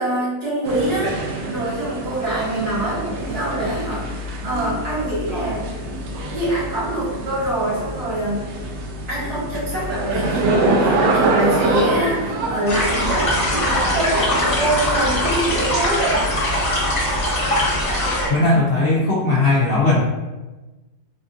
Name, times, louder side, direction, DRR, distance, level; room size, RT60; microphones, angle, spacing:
voice 1, 0.0-4.1 4.4-5.7 6.3-8.4 9.1-16.3, right 1 dB, 70° right, -8 dB, 2.0 m, -24 dB
sound 1, 0.6-15.4, right 2 dB, 85° right, 1.2 m, -25 dB
sound 2, 12.6-18.3, left 1 dB, 30° left, 0.6 m, -21 dB
voice 2, 18.3-20.0, left 2 dB, 80° left, -7 dB, 0.5 m, -17 dB
4.3 x 2.6 x 2.3 m, 1.1 s
omnidirectional pair, 1.7 m